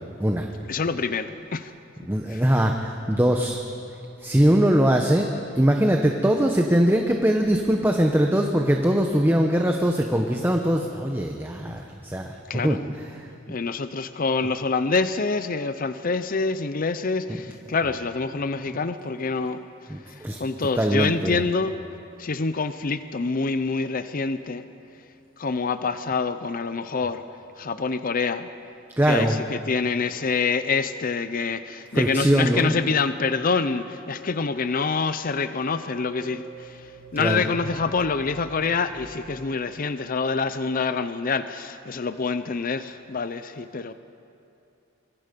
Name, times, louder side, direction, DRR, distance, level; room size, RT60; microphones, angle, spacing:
voice 1, 0.7-1.7 2.3-2.4 12.5-12.9 13.5-19.6 20.1-21.8 22.2-24.6 25.4-27.2 27.6-28.5 29.1-43.9, left 4 dB, 45° left, 12 dB, 0.6 m, -26 dB
voice 2, 2.0-3.6 4.2-5.3 5.5-12.3 12.6-12.8 19.9-20.4 20.8-21.4 29.0-29.4 31.9-32.7 37.2-37.4, equal, 10° right, 3 dB, 0.9 m, -21 dB
sound 1, 35.6-40.2, right 1 dB, 65° right, 2.6 m, -45 dB
25.5 x 23.0 x 5.3 m, 2.7 s
head